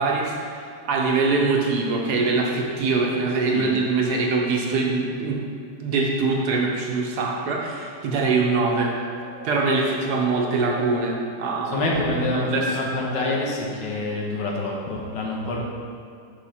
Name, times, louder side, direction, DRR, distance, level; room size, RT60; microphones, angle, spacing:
voice 1, 0.0-5.4 5.8-8.9 9.4-11.8 12.1-12.7, right 3 dB, 70° right, -1 dB, 1.3 m, -23 dB
sound 1, 8.9-10.9 11.3-13.4, left 1 dB, 25° left, 1.5 m, -40 dB
voice 2, 11.7-15.6, left 2 dB, 85° left, -2 dB, 1.8 m, -26 dB
6.3 x 5.3 x 4.2 m, 2.3 s
omnidirectional pair, 1.9 m